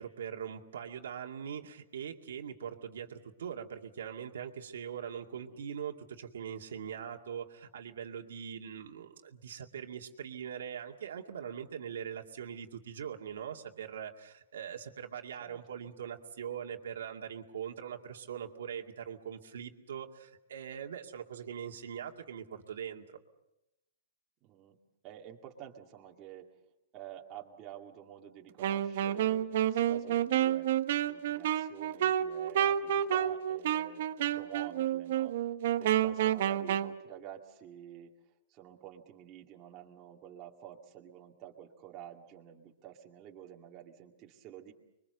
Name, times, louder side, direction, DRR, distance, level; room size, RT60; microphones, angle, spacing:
voice 1, 0.0-23.2, right 8 dB, 85° right, 2 dB, 2.3 m, -42 dB
voice 2, 5.3-5.6 15.4-15.6 24.4-24.8 25.0-26.6 26.9-38.1 38.5-44.7, right 10 dB, 25° right, 0 dB, 2.3 m, -50 dB
Wind instrument woodwind instrument, 28.6-36.9, right 11 dB, 55° right, 1.1 m, -30 dB
26.0 x 23.0 x 6.8 m, 0.91 s
hypercardioid pair, 160°, 0 cm